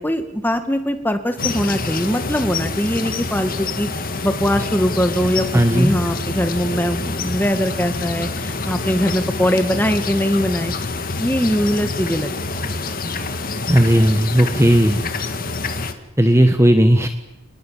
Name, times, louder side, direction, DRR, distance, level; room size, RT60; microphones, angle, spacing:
voice 1, 0.0-5.5 5.7-10.7 11.2-12.3 12.6-12.7, equal, 10° left, 8 dB, 1.9 m, -21 dB
sound 1, 1.4-15.9, left 3 dB, 40° left, 1.9 m, -26 dB
voice 2, 5.5-5.9 13.7-15.0 16.2-17.1, equal, 15° right, 7 dB, 1.4 m, -14 dB
28.0 x 20.0 x 7.6 m, 0.94 s
head